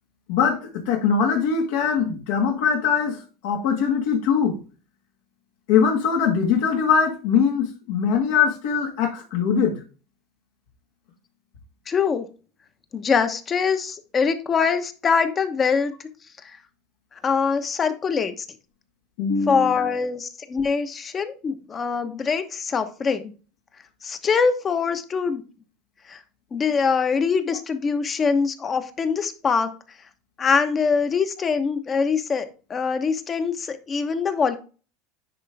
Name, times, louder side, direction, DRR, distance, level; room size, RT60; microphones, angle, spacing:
voice 1, 0.3-4.6 5.7-9.8 19.2-19.9, left 6 dB, 70° left, 1.9 m, -22 dB
voice 2, 11.9-12.2 12.9-15.9 17.2-18.3 19.5-23.3 24.0-25.4 26.1-26.2 26.5-29.7 30.4-34.6, left 5 dB, 30° left, 1.1 m, -23 dB
10.0 x 3.8 x 3.5 m
supercardioid pair, 100°, 0 cm